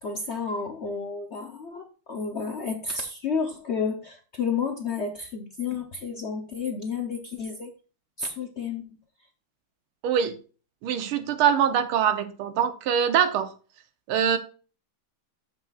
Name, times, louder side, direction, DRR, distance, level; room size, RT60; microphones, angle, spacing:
voice 1, 0.0-7.7 8.2-8.8, left 5 dB, 75° left, 3 dB, 0.6 m, -31 dB
voice 2, 10.0-10.4 10.8-13.5 14.1-14.4, right 8 dB, 80° right, 10 dB, 1.8 m, -23 dB
13.0 x 5.6 x 2.4 m, 0.37 s
omnidirectional pair, 2.3 m